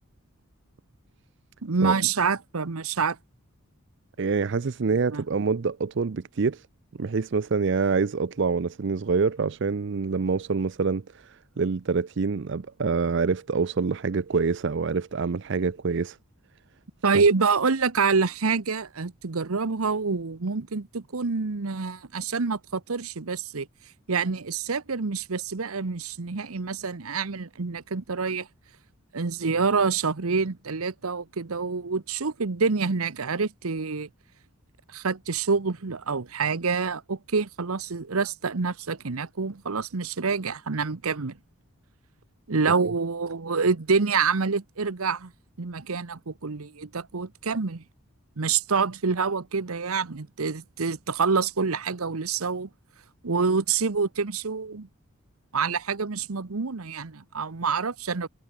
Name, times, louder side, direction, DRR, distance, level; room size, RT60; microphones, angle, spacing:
voice 1, 1.6-3.2 4.9-5.2 17.0-23.7 24.1-28.5 29.1-34.1 34.9-41.4 42.5-45.3 45.6-47.8 48.4-52.7 53.2-54.9 55.5-58.3, right 5 dB, 80° right, 1.0 m, -27 dB
voice 2, 4.2-6.6 7.0-16.2 42.8-42.9, right 4 dB, 55° right, 0.5 m, -26 dB
head